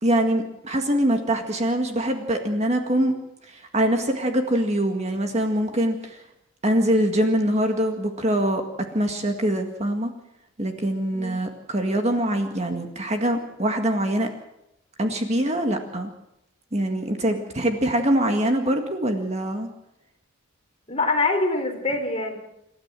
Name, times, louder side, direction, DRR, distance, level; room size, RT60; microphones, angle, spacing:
voice 1, 0.0-3.1 3.5-6.2 6.6-8.6 8.9-10.1 10.6-14.3 15.0-16.1 16.7-19.7, right 1 dB, 30° right, 5 dB, 1.9 m, -23 dB
voice 2, 20.9-22.4, left 2 dB, 30° left, 3 dB, 3.9 m, -24 dB
27.5 x 13.0 x 7.6 m, 0.84 s
head